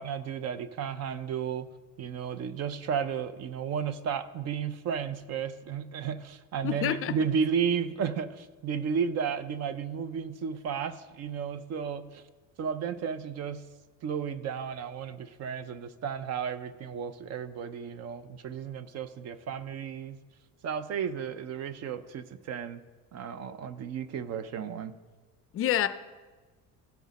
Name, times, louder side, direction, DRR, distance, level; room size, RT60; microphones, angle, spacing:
voice 1, 0.0-1.7 2.0-12.2 12.6-13.6 14.0-20.2 20.6-22.8 23.1-25.0, right 7 dB, 50° right, 0.5 m, -33 dB
voice 2, 6.6-7.1 25.5-25.9, left 11 dB, 40° left, 0.4 m, -27 dB
16.0 x 6.3 x 4.0 m
cardioid pair, 145°, 34 cm